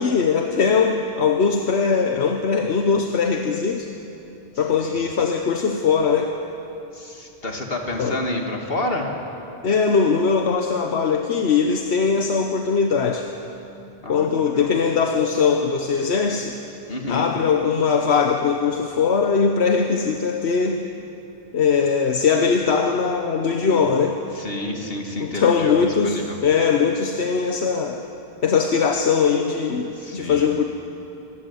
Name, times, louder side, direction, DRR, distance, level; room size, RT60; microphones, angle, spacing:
voice 1, 0.0-3.9 4.6-6.3 8.0-8.2 9.6-13.3 14.1-16.6 17.1-20.9 21.5-24.2 25.2-28.1 28.4-30.6, left 5 dB, 85° left, 4 dB, 1.3 m, -20 dB
voice 2, 6.9-9.2 14.0-14.7 16.9-17.3 23.6-23.9 24.3-26.4 30.0-30.5, left 2 dB, 65° left, 2 dB, 2.7 m, -29 dB
24.5 x 14.5 x 9.9 m, 2.8 s
omnidirectional pair, 1.1 m